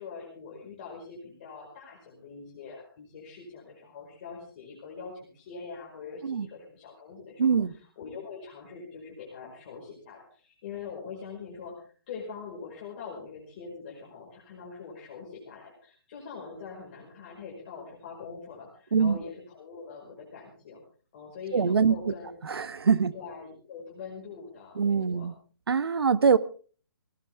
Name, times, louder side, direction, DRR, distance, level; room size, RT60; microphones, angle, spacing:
voice 1, 0.0-7.6 8.0-20.8 21.1-22.3 23.1-25.3, left 5 dB, 25° left, -3 dB, 5.2 m, -43 dB
voice 2, 7.4-7.7 18.9-19.2 21.5-22.1 22.4-23.1 24.7-25.3 25.7-26.4, right 6 dB, 85° right, 14 dB, 1.4 m, -23 dB
19.0 x 18.5 x 3.6 m, 0.41 s
hypercardioid pair, 175°, 12 cm